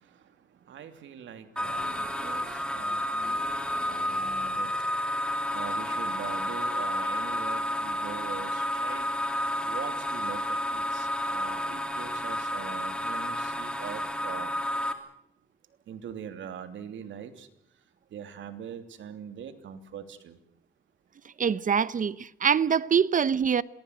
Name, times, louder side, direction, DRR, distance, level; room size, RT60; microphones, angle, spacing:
voice 1, 0.7-3.4 3.9-4.7 5.5-9.1 9.6-14.5 15.9-17.5 18.1-20.4, right 8 dB, 70° right, 3.0 m, -42 dB
sound 1, 1.6-14.9, left 1 dB, 5° left, 3.3 m, -31 dB
voice 2, 21.4-23.6, right 7 dB, 40° right, 0.9 m, -24 dB
27.5 x 20.0 x 8.3 m
cardioid pair, 90°, 20 cm